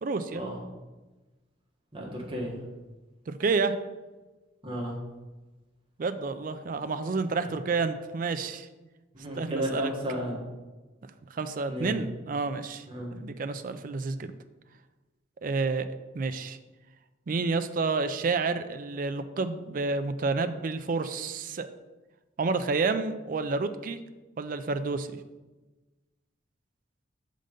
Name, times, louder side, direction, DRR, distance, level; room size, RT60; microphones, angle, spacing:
voice 1, 0.0-0.4 3.3-3.7 6.0-8.7 9.4-9.9 11.3-12.8 13.1-14.3 15.4-15.9 16.1-16.6 17.3-21.7 22.4-24.0 24.4-25.2, right 4 dB, 45° right, 9 dB, 0.4 m, -29 dB
voice 2, 1.9-2.5 4.6-4.9 9.1-10.4 11.7-12.0 12.8-13.2, equal, 30° right, -3 dB, 1.5 m, -33 dB
6.6 x 3.8 x 5.1 m, 1.2 s
head